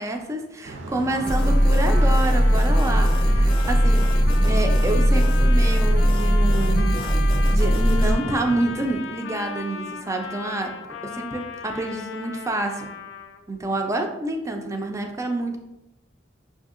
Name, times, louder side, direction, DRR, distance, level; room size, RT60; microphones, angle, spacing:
voice 1, 0.0-4.1 4.4-6.9 7.5-10.7 11.0-12.9 13.5-15.6, right 2 dB, 15° right, 3 dB, 0.3 m, -28 dB
sound 1, 0.6-8.9, right 2 dB, 70° right, 0.5 m, -37 dB
Trumpet, 1.1-13.5, left 6 dB, 75° left, 0.4 m, -36 dB
sound 2, 1.3-8.1, equal, 30° left, 0.6 m, -19 dB
5.5 x 2.6 x 2.4 m, 0.93 s
head